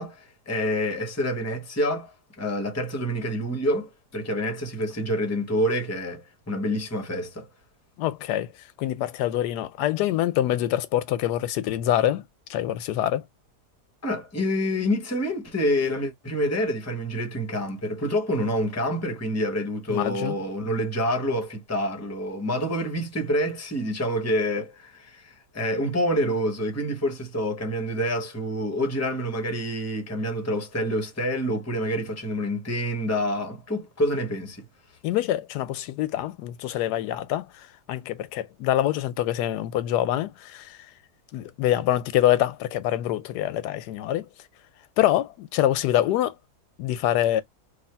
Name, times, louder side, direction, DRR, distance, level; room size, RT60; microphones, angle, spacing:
voice 1, 0.0-7.5 14.0-34.6, equal, 15° left, 0.7 m, -27 dB
voice 2, 8.0-12.2 12.5-13.2 19.9-20.4 35.0-40.9 41.3-44.3 45.0-46.3 46.8-47.4, left 12 dB, 90° left, 1.2 m, -25 dB
3.3 x 2.7 x 4.3 m
omnidirectional pair, 1.7 m